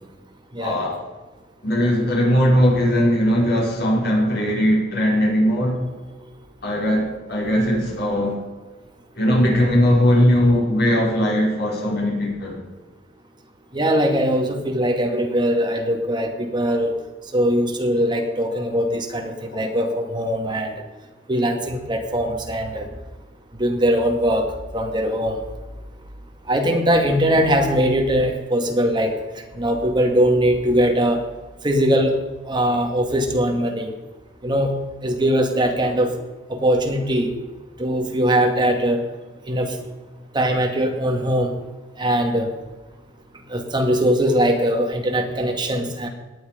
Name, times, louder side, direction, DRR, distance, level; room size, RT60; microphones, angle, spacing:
voice 1, 0.6-0.9 1.6-5.8 6.6-8.3 9.2-12.6 19.5-19.7, equal, 60° left, -2 dB, 5.5 m, -19 dB
voice 2, 13.7-16.9 17.3-20.7 21.3-22.9 23.6-24.5 24.7-25.4 26.5-29.1 29.6-31.2 31.6-32.1 32.5-33.9 34.4-34.7 35.0-36.1 36.5-37.3 37.8-39.0 39.5-39.8 40.3-41.5 42.0-42.5 43.5-46.1, equal, 25° right, 3 dB, 2.3 m, -21 dB
18.5 x 10.5 x 5.2 m, 1.2 s
head